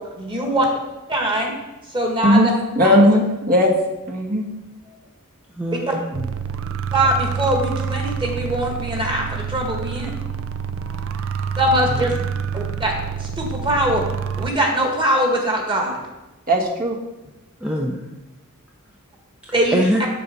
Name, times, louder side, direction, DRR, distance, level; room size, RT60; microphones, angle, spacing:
voice 1, 0.2-0.7 1.1-1.5 1.9-2.4 2.8-2.9 5.9-6.0 6.9-10.1 11.6-12.1 12.5-14.0 14.4-16.0 19.5-19.7, right 1 dB, 20° right, 1 dB, 1.7 m, -22 dB
voice 2, 2.7-3.7 4.1-4.4 16.5-17.0, equal, 40° right, 0 dB, 1.4 m, -16 dB
voice 3, 5.5-6.3 11.9-12.3 17.6-18.1 19.4-20.0, equal, 5° right, -2 dB, 0.6 m, -24 dB
sound 1, 6.1-14.5, right 7 dB, 65° right, 0.5 m, -27 dB
7.5 x 7.0 x 5.2 m, 1.0 s
head